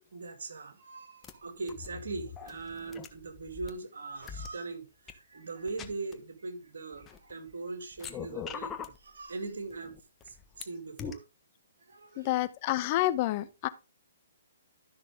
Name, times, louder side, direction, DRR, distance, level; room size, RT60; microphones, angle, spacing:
voice 1, 0.1-9.9 10.2-11.2 11.9-12.4, right 3 dB, 70° right, 2.3 m, -41 dB
sound 1, 1.2-1.3 1.7-3.7 4.2-4.5 5.1-5.2 5.7-6.1 6.9-7.5 7.9-9.0 9.7-10.6 11.0-11.1, left 7 dB, 20° left, 1.3 m, -42 dB
voice 2, 12.2-13.7, left 15 dB, 40° left, 0.9 m, -29 dB
13.0 x 6.1 x 3.6 m
figure-of-eight pair, 130°, 0 cm